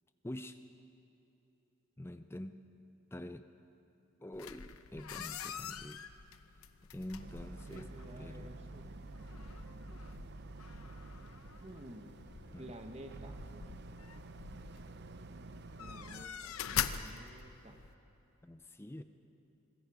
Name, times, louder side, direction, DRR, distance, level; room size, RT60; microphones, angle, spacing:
voice 1, 0.2-0.6 2.0-2.7 3.1-3.5 4.2-6.1 6.9-7.9 8.2-8.5 12.5-12.7 18.4-19.0, left 1 dB, 10° left, 10 dB, 0.5 m, -46 dB
sound 1, 4.3-17.9, left 8 dB, 80° left, 0.8 m, -44 dB
Boat Water vehicle, 7.2-16.3, right 2 dB, 50° right, 0.6 m, -50 dB
voice 2, 7.7-8.9 11.6-12.1 12.6-13.5 15.8-17.8 19.0-19.1, right 1 dB, 30° right, 5 dB, 1.2 m, -51 dB
25.5 x 21.0 x 4.9 m, 2.9 s
head